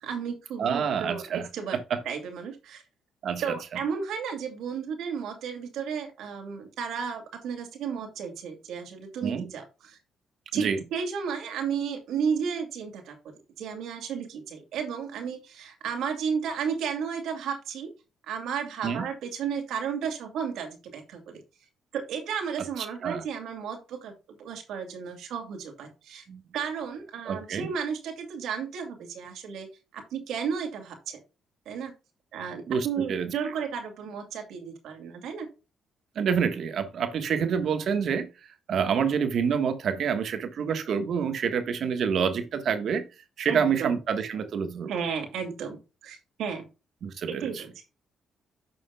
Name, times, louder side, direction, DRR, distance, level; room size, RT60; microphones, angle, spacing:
voice 1, 0.0-1.8 2.0-2.8 3.4-10.0 10.5-13.2 13.6-17.9 18.3-21.4 21.9-26.2 26.5-29.7 29.9-31.2 31.7-31.9 32.3-35.5 43.5-44.0 44.9-46.7 47.3-47.7, right 6 dB, 80° right, 2.4 m, -33 dB
voice 2, 0.6-1.5 1.7-2.0 3.2-3.4 9.2-9.4 10.5-10.8 18.8-19.1 22.8-23.2 26.3-26.4 27.3-27.7 32.7-33.3 36.1-38.3 38.7-43.1 43.4-44.9 47.0-47.5, right 7 dB, 65° right, 1.4 m, -27 dB
11.5 x 6.2 x 2.3 m
cardioid pair, 90°, 0 cm